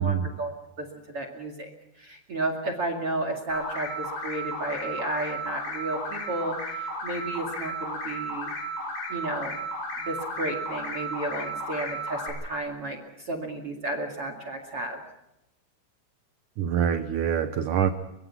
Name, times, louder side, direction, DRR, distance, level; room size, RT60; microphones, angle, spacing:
voice 1, 0.0-1.7 2.0-8.5 9.1-9.6 10.0-15.0, right 2 dB, 40° right, 6 dB, 2.5 m, -33 dB
sound 1, 3.5-12.3, right 1 dB, 70° left, 8.9 m, -34 dB
voice 2, 16.6-17.9, right 8 dB, 85° right, 9 dB, 1.8 m, -25 dB
24.0 x 23.5 x 6.0 m, 0.86 s
omnidirectional pair, 5.1 m